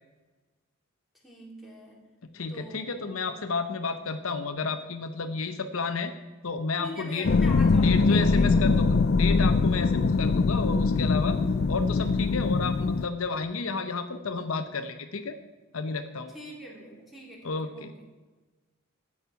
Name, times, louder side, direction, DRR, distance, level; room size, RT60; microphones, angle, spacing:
voice 1, 1.2-2.0 2.5-3.4 6.8-8.9 9.9-10.0 16.3-17.9, equal, ahead, -3 dB, 3.1 m, -43 dB
voice 2, 2.3-6.1 6.4-7.3 7.7-11.4 11.7-15.4 15.7-16.4 17.4-17.9, left 4 dB, 70° left, 8 dB, 0.8 m, -31 dB
sound 1, 7.2-13.0, left 4 dB, 50° left, 0.4 m, -22 dB
13.0 x 8.6 x 5.7 m, 1.2 s
head